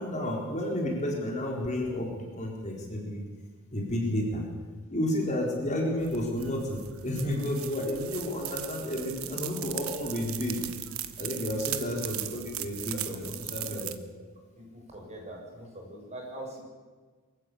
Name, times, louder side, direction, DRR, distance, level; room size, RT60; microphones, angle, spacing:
voice 1, 0.0-3.2 3.7-4.4 4.9-10.7 11.2-13.9, left 1 dB, 35° left, 0 dB, 4.1 m, -31 dB
sound 1, 6.0-14.0, right 12 dB, 65° right, 1.3 m, -38 dB
voice 2, 11.4-11.8 12.9-13.2 13.6-13.7 14.5-16.6, right 1 dB, 30° right, -1 dB, 7.0 m, -43 dB
24.0 x 14.5 x 8.5 m, 1.4 s
head